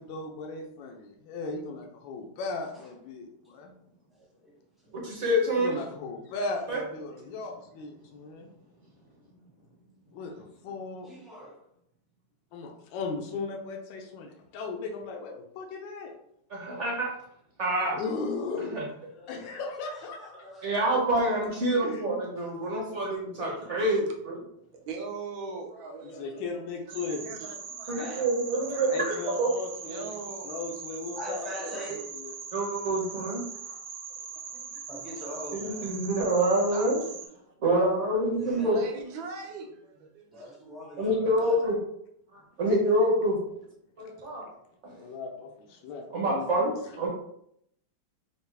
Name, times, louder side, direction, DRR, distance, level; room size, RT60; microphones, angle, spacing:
voice 1, 0.0-3.7 5.6-7.5 7.8-8.5 10.1-11.1 12.5-16.1 17.9-18.8 19.1-20.5 21.8-22.1 26.0-27.3 28.9-30.2 30.4-32.3 44.9-46.7, left 3 dB, 80° left, 1 dB, 1.4 m, -37 dB
voice 2, 4.2-4.5 4.8-5.0 11.0-11.6 19.1-19.5 19.9-21.0 27.9-28.2 31.1-32.2 34.9-35.9 38.4-38.8 40.3-41.6, equal, ahead, -5 dB, 0.6 m, -42 dB
voice 3, 4.9-5.7 6.7-6.8 16.5-17.1 17.6-18.0 18.7-18.8 20.6-24.4 27.9-29.5 32.5-33.8 35.6-37.0 37.6-38.8 41.0-41.7 42.3-43.4 44.0-44.4 44.8-45.0 46.1-47.1, right 1 dB, 50° right, -3 dB, 1.0 m, -27 dB
voice 4, 24.9-26.5 27.2-28.2 28.5-28.9 29.9-30.5 32.6-33.1 34.5-34.8 36.7-37.5 38.6-40.6 44.2-44.3, right 4 dB, 85° right, 2 dB, 1.5 m, -41 dB
sound 1, 26.9-37.3, right 6 dB, 70° right, 1.1 m, -41 dB
4.7 x 2.4 x 3.2 m, 0.73 s
omnidirectional pair, 2.1 m